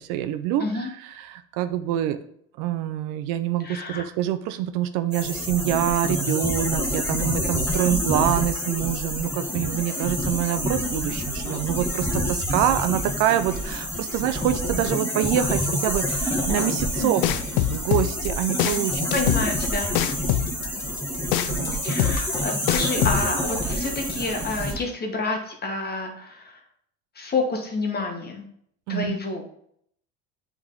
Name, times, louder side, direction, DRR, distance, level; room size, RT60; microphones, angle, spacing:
voice 1, 0.0-2.2 2.6-17.2 17.6-19.1 21.5-22.2 28.9-29.2, right 12 dB, 70° right, 10 dB, 0.6 m, -26 dB
voice 2, 0.6-0.9 3.6-4.0 17.0-17.3 19.1-19.9 21.8-26.6 27.1-28.5 28.9-29.4, left 3 dB, 30° left, 2 dB, 1.5 m, -29 dB
sound 1, 5.1-24.7, equal, 5° left, 1.5 m, -27 dB
sound 2, 17.2-23.2, left 14 dB, 75° left, 0.5 m, -24 dB
7.9 x 3.7 x 3.8 m, 0.68 s
supercardioid pair, 100°, 33 cm